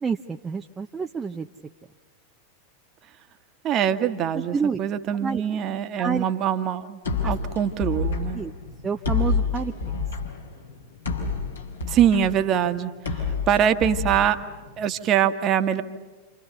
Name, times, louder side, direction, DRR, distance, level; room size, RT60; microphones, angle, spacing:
voice 1, 0.0-1.5 4.3-4.8 5.2-5.4 6.0-6.3 8.3-8.5 8.8-9.7, right 5 dB, 15° right, 3 dB, 0.8 m, -28 dB
voice 2, 3.6-8.4 11.9-14.4 14.8-15.8, right 9 dB, 35° right, 9 dB, 1.5 m, -23 dB
sound 1, 7.0-15.0, left 4 dB, 75° left, 5.1 m, -29 dB
29.0 x 28.5 x 6.9 m, 1.2 s
figure-of-eight pair, 90°, 0 cm